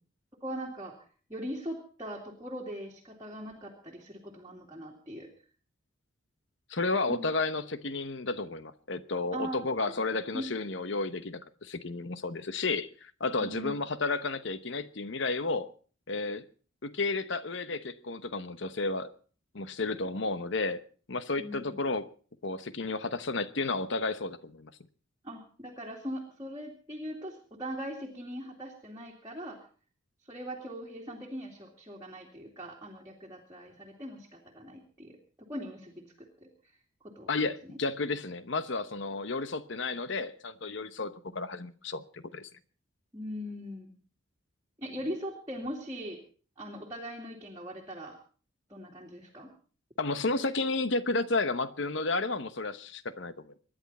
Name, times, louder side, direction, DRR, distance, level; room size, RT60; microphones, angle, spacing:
voice 1, 0.4-1.0 1.3-5.3 7.1-7.2 9.3-9.6 9.9-10.0 10.3-10.5 13.4-13.7 21.4-21.8 25.2-29.6 30.2-36.5 37.0-37.3 37.6-37.8 43.1-43.9 44.8-46.2 46.6-48.2 48.7-49.5, equal, 20° right, 2.4 m, -40 dB
voice 2, 6.7-15.7 16.1-16.4 16.8-19.1 19.5-20.8 21.1-22.0 22.4-24.7 37.3-42.5 50.0-53.3, left 3 dB, 60° left, 0.9 m, -32 dB
25.0 x 11.0 x 4.2 m
head